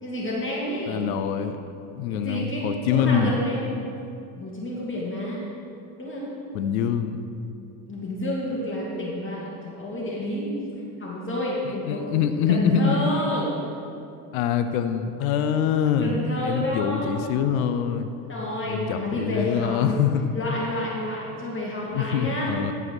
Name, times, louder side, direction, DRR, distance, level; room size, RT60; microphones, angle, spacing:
voice 1, 0.0-1.1 2.1-3.7 4.4-5.4 6.0-6.3 7.8-10.5 11.0-12.0 12.5-13.7 15.2-15.3 16.0-17.2 18.3-20.0 20.3-22.5, left 1 dB, 30° left, -4 dB, 2.5 m, -29 dB
voice 2, 0.9-1.6 1.9-3.4 6.5-7.2 11.9-13.1 14.3-18.1 18.7-20.3 21.9-22.7, left 7 dB, 85° left, 9 dB, 0.8 m, -24 dB
12.5 x 4.9 x 6.1 m, 2.5 s
supercardioid pair, 80°, 41 cm